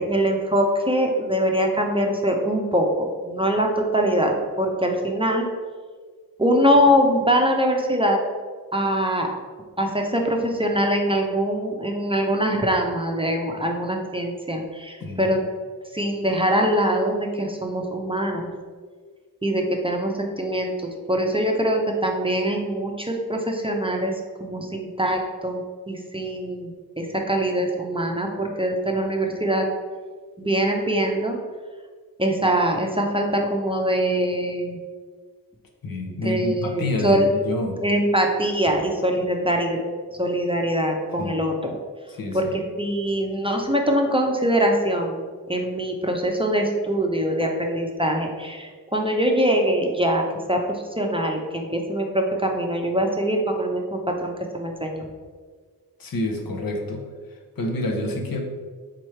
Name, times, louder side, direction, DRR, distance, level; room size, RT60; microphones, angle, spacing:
voice 1, 0.0-5.5 6.4-8.2 8.7-9.3 9.8-15.4 15.9-18.5 19.4-24.1 24.4-26.7 27.0-29.7 30.4-31.4 32.2-34.8 36.2-37.3 37.8-39.8 40.2-41.8 42.3-50.2 50.5-55.1, equal, 15° right, 1 dB, 0.6 m, -23 dB
voice 2, 35.8-37.8 39.2-39.4 41.2-41.4 42.1-42.4 56.0-57.0 57.3-58.4, left 1 dB, 65° left, 2 dB, 0.8 m, -28 dB
3.7 x 3.1 x 4.4 m, 1.5 s
cardioid pair, 50°, 38 cm